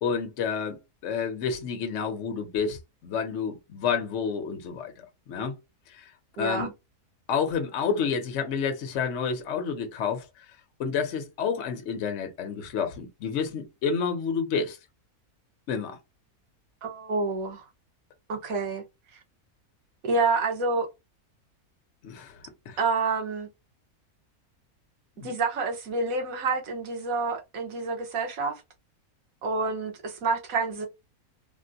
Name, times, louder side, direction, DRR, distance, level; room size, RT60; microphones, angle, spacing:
voice 1, 0.0-5.5 5.9-6.1 6.4-6.7 7.3-10.5 10.8-14.8 15.7-16.0 22.0-22.4 22.7-22.8 25.2-25.3, left 6 dB, 60° left, 1.0 m, -29 dB
voice 2, 6.4-6.7 16.8-17.6 18.3-18.8 20.0-20.9 22.8-23.5 25.2-28.6 29.4-30.9, right 3 dB, 65° right, 1.3 m, -28 dB
3.6 x 2.1 x 2.6 m
omnidirectional pair, 1.6 m